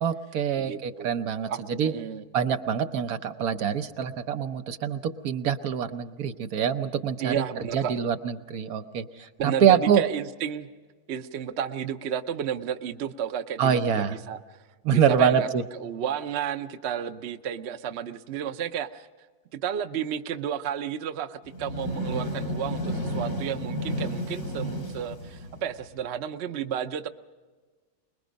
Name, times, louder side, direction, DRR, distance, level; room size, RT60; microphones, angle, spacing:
voice 1, 0.0-1.5 1.8-1.9 2.3-7.3 7.7-9.0 9.6-10.0 13.6-14.1 14.8-15.6, right 8 dB, 75° right, 8 dB, 1.4 m, -25 dB
voice 2, 0.6-2.2 7.2-8.0 9.4-10.7 11.1-14.6 14.9-19.1 19.5-27.1, right 8 dB, 55° right, 9 dB, 0.9 m, -32 dB
sound 1, 21.5-26.0, equal, 80° left, 6.4 m, -32 dB
24.0 x 21.5 x 5.2 m, 1.4 s
omnidirectional pair, 1.6 m